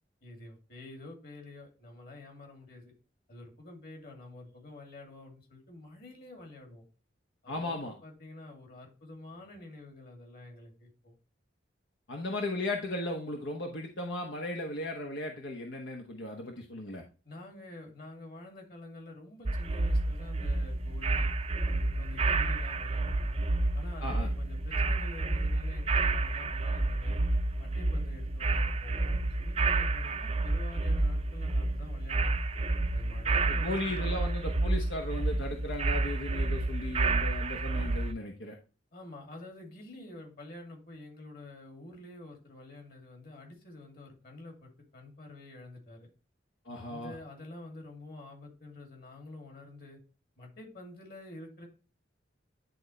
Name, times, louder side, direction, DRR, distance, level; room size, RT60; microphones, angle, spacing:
voice 1, 0.2-2.9 3.3-6.8 7.4-11.1 17.2-21.3 21.6-23.4 23.7-27.2 27.6-32.3 32.9-34.2 38.9-46.1 46.7-50.0 50.4-51.7, left 2 dB, 55° left, 2 dB, 2.5 m, -48 dB
voice 2, 7.5-7.9 12.1-17.0 24.0-24.3 33.5-38.6 46.7-47.1, left 1 dB, 80° left, 2 dB, 1.1 m, -36 dB
sound 1, 19.5-38.1, right 2 dB, 35° right, 0.5 m, -30 dB
10.5 x 4.0 x 3.2 m, 0.35 s
head